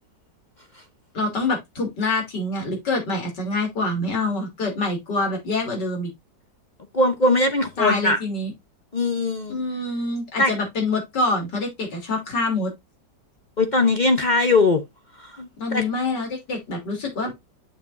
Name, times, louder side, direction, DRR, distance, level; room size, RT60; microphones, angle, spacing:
voice 1, 1.1-6.1 7.8-8.5 9.5-12.7 15.6-17.3, left 2 dB, 75° left, 3.7 m, -26 dB
voice 2, 6.9-8.2 8.9-9.6 10.4-10.5 13.6-14.8 15.2-15.9, left 2 dB, 40° left, 0.7 m, -20 dB
7.9 x 7.0 x 2.6 m
omnidirectional pair, 1.9 m